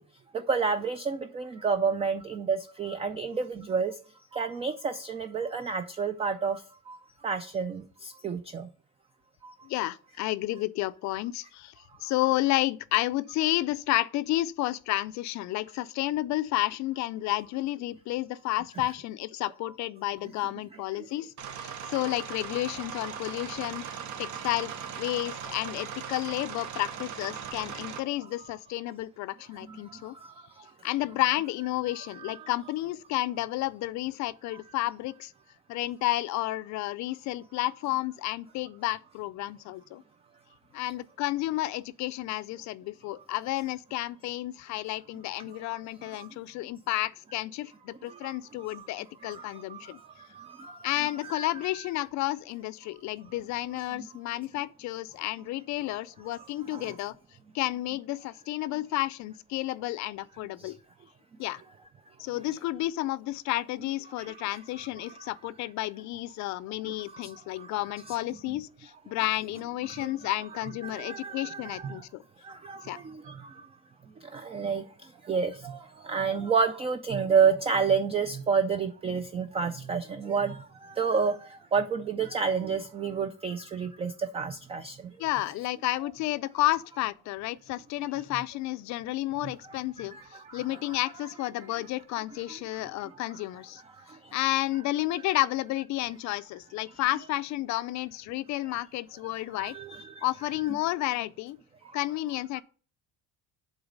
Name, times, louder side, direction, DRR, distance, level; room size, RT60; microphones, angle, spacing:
voice 1, 0.3-3.9 4.3-6.6 6.9-7.0 7.2-7.8 8.2-8.7 32.2-32.4 49.7-49.8 51.2-51.8 56.7-56.9 68.1-68.2 69.9-70.1 70.8-72.0 72.6-72.8 73.1-73.2 74.3-74.8 75.3-75.8 76.1-80.6 80.8-81.3 81.7-85.0 99.6-100.3, right 5 dB, 20° right, 0.3 m, -29 dB
voice 2, 9.6-11.7 12.0-30.2 30.8-35.3 35.7-40.0 40.7-50.0 50.8-57.1 57.5-60.8 61.4-61.6 62.2-72.2 72.8-73.0 85.2-93.8 94.3-99.8 100.2-101.6 101.9-102.6, left 16 dB, 60° left, 0.4 m, -31 dB
sound 1, 21.4-28.0, right 8 dB, 60° right, 1.0 m, -39 dB
7.9 x 4.0 x 5.2 m
cardioid pair, 155°, 33 cm